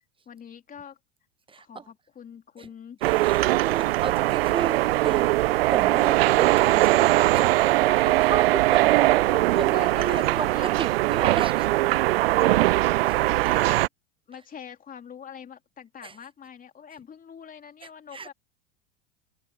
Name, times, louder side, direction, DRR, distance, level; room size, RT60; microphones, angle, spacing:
voice 1, 0.2-1.0 1.6-3.0 4.5-4.9 7.3-7.5 7.8-8.2 9.3-10.7 12.4-13.9 14.3-18.3, left 8 dB, 25° left, 3.1 m, -44 dB
voice 2, 1.5-1.9 2.6-2.7 3.0-5.3 5.7-7.4 8.0-11.7 13.0-13.2 16.0-16.2 18.1-18.3, right 5 dB, 15° right, 0.7 m, -34 dB
sound 1, 3.0-13.9, right 18 dB, 70° right, 0.4 m, -21 dB
hypercardioid pair, 90°, 31 cm